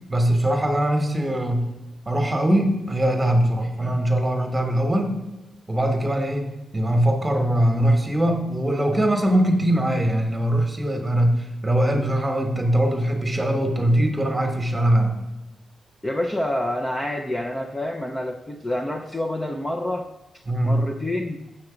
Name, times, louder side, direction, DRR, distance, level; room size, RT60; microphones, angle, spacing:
voice 1, 0.1-1.6 2.1-5.1 5.7-6.5 6.7-15.1 20.5-20.8, right 1 dB, 15° right, 4 dB, 1.2 m, -21 dB
voice 2, 16.0-20.1 20.6-21.5, left 1 dB, 10° left, 2 dB, 0.5 m, -27 dB
7.4 x 6.5 x 5.0 m, 1.1 s
wide cardioid pair, 150°, 0 cm